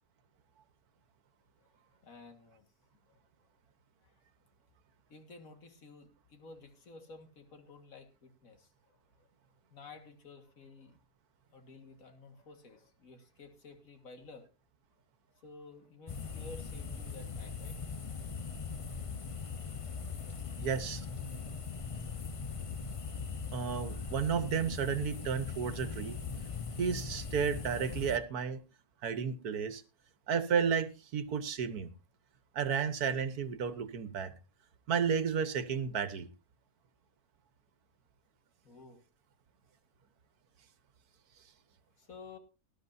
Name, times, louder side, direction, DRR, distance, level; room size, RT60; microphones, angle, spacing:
voice 1, 2.0-2.6 4.0-4.1 5.1-9.0 9.7-11.0 11.5-14.5 15.4-17.8 20.4-20.5 38.6-39.0 42.0-42.4, left 3 dB, 65° left, 6 dB, 2.3 m, -53 dB
sound 1, 16.1-28.2, left 5 dB, 35° left, 0.5 m, -40 dB
voice 2, 20.6-21.1 23.5-26.2 26.8-28.6 29.0-29.8 30.3-31.9 32.5-34.3 34.9-36.3, right 6 dB, 80° right, 12 dB, 1.6 m, -32 dB
19.0 x 12.5 x 2.7 m, 0.31 s
omnidirectional pair, 1.6 m